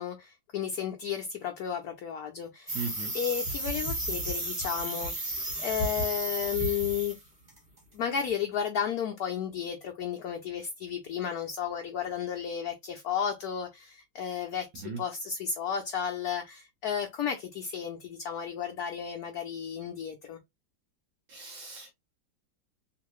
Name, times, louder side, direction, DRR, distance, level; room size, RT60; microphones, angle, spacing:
voice 1, 0.0-2.7 3.1-7.2 7.9-20.4, left 8 dB, 65° left, 1.0 m, -33 dB
sound 1, 2.7-7.2 7.5-7.8, right 1 dB, 25° right, 1.3 m, -33 dB
voice 2, 2.7-3.1 14.8-15.0 21.3-21.9, right 5 dB, 70° right, 1.7 m, -38 dB
3.9 x 2.6 x 3.0 m
omnidirectional pair, 2.1 m